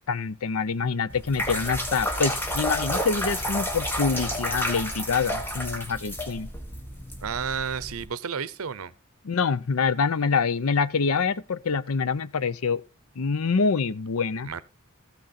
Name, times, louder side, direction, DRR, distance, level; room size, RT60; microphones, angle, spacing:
voice 1, 0.0-6.5 9.2-12.8 13.2-14.6, left 5 dB, 85° left, 0.6 m, -26 dB
sound 1, 1.1-8.1, equal, 10° left, 1.4 m, -30 dB
Thunder, 4.1-6.3, equal, 40° left, 3.3 m, -47 dB
voice 2, 7.2-8.9 14.4-14.6, right 6 dB, 80° right, 0.7 m, -31 dB
14.5 x 6.4 x 4.2 m
head